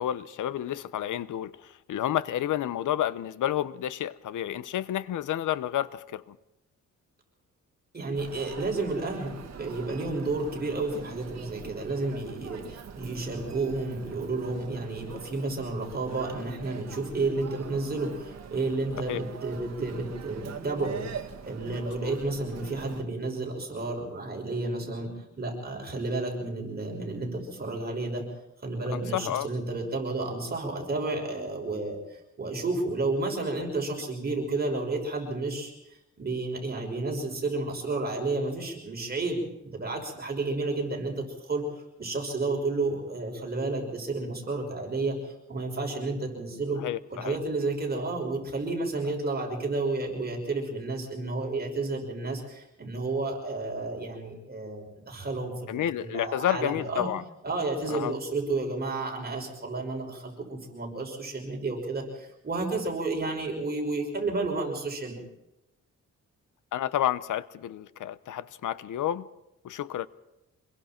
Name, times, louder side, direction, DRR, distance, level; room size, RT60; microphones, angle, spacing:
voice 1, 0.0-6.4 19.1-19.2 22.0-22.2 28.9-29.5 46.8-47.4 55.7-57.2 57.9-58.1 66.7-69.3 69.6-70.1, left 11 dB, 85° left, 0.9 m, -30 dB
voice 2, 7.9-21.0 21.5-28.2 28.6-35.7 36.2-41.6 42.0-46.8 47.1-57.1 57.4-65.2, right 3 dB, 30° right, 6.0 m, -31 dB
Human voice, 8.1-23.0, right 7 dB, 60° right, 1.9 m, -43 dB
26.0 x 22.5 x 4.5 m
cardioid pair, 115°, 30 cm